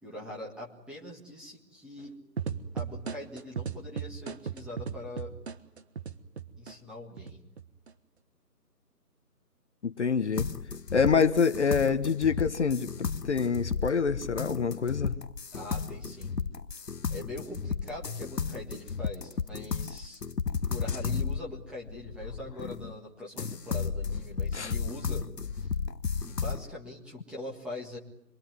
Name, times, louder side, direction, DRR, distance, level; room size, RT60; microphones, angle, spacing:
voice 1, 0.0-2.2 2.7-5.3 6.6-7.4 15.5-16.5 17.1-20.2 20.7-25.3 25.5-25.7 26.2-28.0, left 1 dB, ahead, 1.7 m, -42 dB
sound 1, 2.4-6.7 7.2-7.9, right 6 dB, 40° right, 1.5 m, -36 dB
voice 2, 9.8-10.5 10.9-15.2 24.5-24.7, left 5 dB, 45° left, 1.3 m, -26 dB
sound 2, 10.4-23.0 23.4-26.7, left 5 dB, 85° left, 1.2 m, -34 dB
27.0 x 23.5 x 9.4 m
figure-of-eight pair, 155°, 48 cm